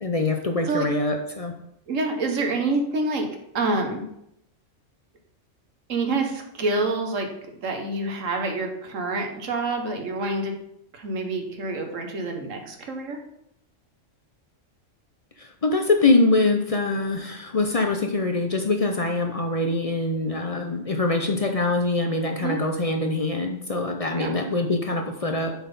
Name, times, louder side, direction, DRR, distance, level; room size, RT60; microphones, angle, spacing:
voice 1, 0.0-1.5 15.4-25.5, left 2 dB, 40° left, 4 dB, 0.5 m, -24 dB
voice 2, 1.9-3.3 3.5-4.1 5.9-7.3 7.6-10.5 10.9-13.2 22.4-22.6 24.2-24.3, right 2 dB, 80° right, 4 dB, 1.4 m, -27 dB
6.9 x 4.1 x 5.4 m, 0.77 s
omnidirectional pair, 1.3 m